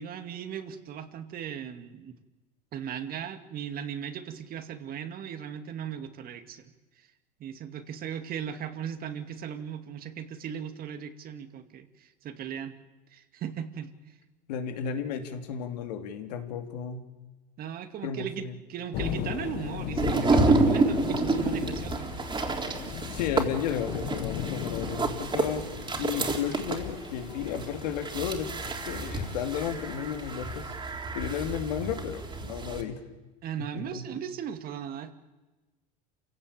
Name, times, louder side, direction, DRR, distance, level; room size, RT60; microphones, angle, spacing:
voice 1, 0.0-2.2 2.7-7.1 7.4-12.7 13.1-14.2 17.6-22.1 33.4-35.1, right 8 dB, 45° right, 9 dB, 2.3 m, -37 dB
voice 2, 14.5-17.1 18.0-18.6 23.1-25.6 26.0-28.6 28.9-30.7 31.1-33.0 33.6-34.0, left 8 dB, 80° left, 6 dB, 2.9 m, -33 dB
sound 1, 18.9-30.7, left 12 dB, 60° left, 1.6 m, -38 dB
sound 2, 20.0-32.8, right 3 dB, 25° right, 3.9 m, -29 dB
28.0 x 16.5 x 8.8 m, 1.2 s
hypercardioid pair, 95°, 21 cm